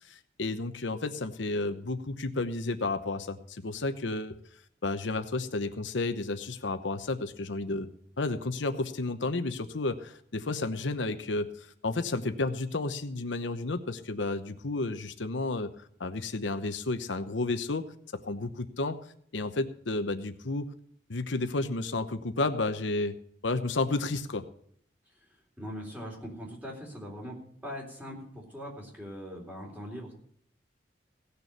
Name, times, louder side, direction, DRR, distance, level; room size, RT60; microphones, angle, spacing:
voice 1, 0.0-4.4 4.8-7.9 8.2-15.7 16.0-17.9 18.1-19.0 19.3-20.7 21.1-23.2 23.4-24.5, left 2 dB, 80° left, 9 dB, 0.9 m, -32 dB
voice 2, 25.6-27.4 27.6-30.1, equal, 10° right, -1 dB, 3.7 m, -41 dB
17.0 x 6.8 x 6.6 m, 0.64 s
head